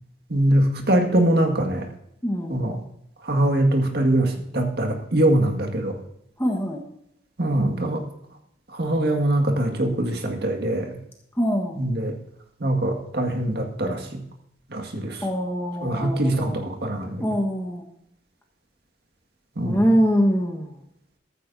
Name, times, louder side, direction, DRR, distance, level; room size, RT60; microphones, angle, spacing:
voice 1, 0.3-1.9 2.5-2.8 3.2-6.0 7.4-8.0 8.7-11.0 11.8-12.2 12.6-14.2 14.7-15.2 15.8-17.2 19.6-19.9, right 1 dB, 60° right, 3 dB, 2.0 m, -23 dB
voice 2, 2.2-2.6 6.4-6.8 11.4-11.8 15.2-16.6 17.2-17.9 19.6-20.7, equal, 15° left, -1 dB, 1.4 m, -23 dB
14.5 x 14.0 x 2.8 m, 0.77 s
head